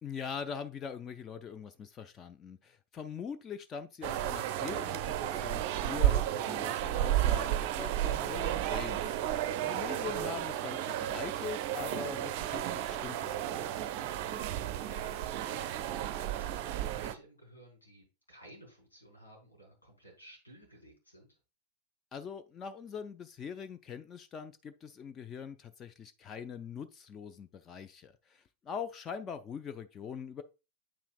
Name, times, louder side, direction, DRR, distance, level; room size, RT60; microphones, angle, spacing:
voice 1, 0.0-13.8 22.1-30.4, left 6 dB, 25° left, 0.4 m, -43 dB
sound 1, 4.0-17.1, right 12 dB, 45° right, 0.5 m, -32 dB
voice 2, 9.8-10.2 14.6-21.4, right 1 dB, 80° left, 3.7 m, -55 dB
8.5 x 5.7 x 2.3 m
figure-of-eight pair, 90°, 0 cm